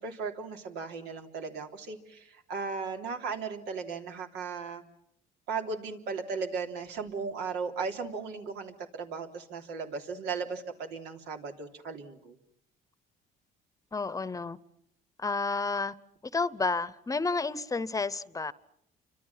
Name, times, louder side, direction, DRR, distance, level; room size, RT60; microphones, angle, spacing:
voice 1, 0.0-4.8 5.5-12.4, right 5 dB, 85° right, 3.5 m, -36 dB
voice 2, 13.9-14.6 15.2-15.9 16.3-18.5, left 4 dB, 20° left, 0.9 m, -30 dB
29.5 x 25.5 x 5.8 m
cardioid pair, 110°, 17 cm